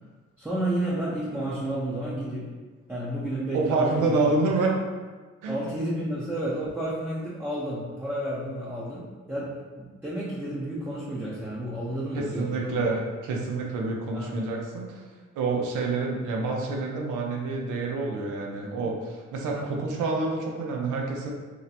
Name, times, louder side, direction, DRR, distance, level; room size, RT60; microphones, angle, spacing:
voice 1, 0.4-2.5 2.9-4.2 5.5-12.9 14.1-14.4 19.5-19.7, right 1 dB, 5° right, -9 dB, 0.6 m, -31 dB
voice 2, 3.5-4.8 5.4-5.7 12.1-15.0 15.3-21.3, right 3 dB, 85° right, 0 dB, 0.6 m, -28 dB
2.7 x 2.1 x 4.1 m, 1.4 s
cardioid pair, 90°, 30 cm